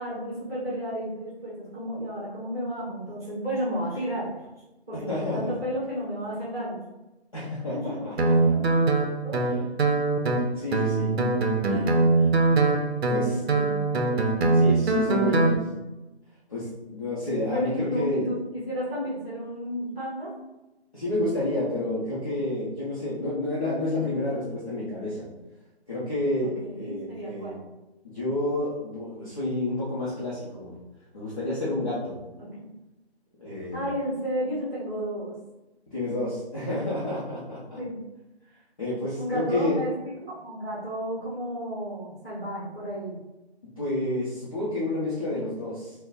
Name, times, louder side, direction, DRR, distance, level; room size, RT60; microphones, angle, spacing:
voice 1, 0.0-4.3 4.9-6.8 7.7-8.7 9.2-9.7 11.7-12.1 13.3-13.8 17.4-20.3 26.4-27.7 32.4-32.7 33.7-35.3 36.7-36.8 37.7-38.0 39.2-39.9 40.2-43.2, equal, 20° right, -9 dB, 1.0 m, -32 dB
voice 2, 5.1-5.5 7.3-8.5 10.6-11.1 12.2-12.3 13.1-13.4 14.5-15.6 16.5-18.2 20.9-25.3 25.9-27.5 28.0-30.8 31.1-32.2 33.4-33.9 35.9-37.8 38.8-39.8 43.8-45.9, left 1 dB, 35° left, -10 dB, 0.7 m, -30 dB
Guitar, 8.2-15.6, right 3 dB, 75° right, 0.6 m, -22 dB
3.8 x 2.1 x 2.5 m, 1.0 s
hypercardioid pair, 175°, 32 cm